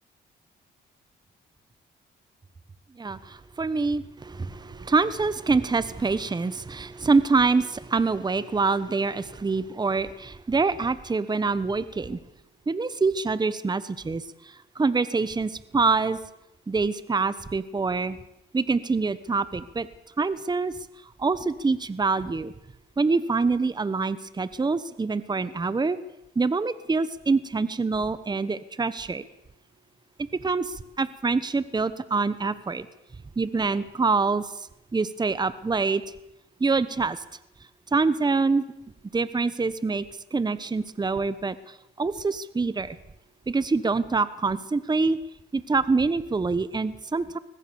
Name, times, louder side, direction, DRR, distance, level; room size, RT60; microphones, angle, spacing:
voice 1, 3.0-12.2 12.7-16.2 16.7-18.2 18.5-19.9 20.2-20.8 21.2-22.5 23.0-26.0 26.3-29.3 30.3-32.9 33.4-34.6 34.9-36.0 36.6-37.2 37.9-38.6 39.1-40.1 40.3-43.0 43.5-45.2 45.5-47.4, right 4 dB, 20° right, 15 dB, 1.1 m, -25 dB
22.0 x 20.5 x 7.1 m, 0.82 s
cardioid pair, 90°, 20 cm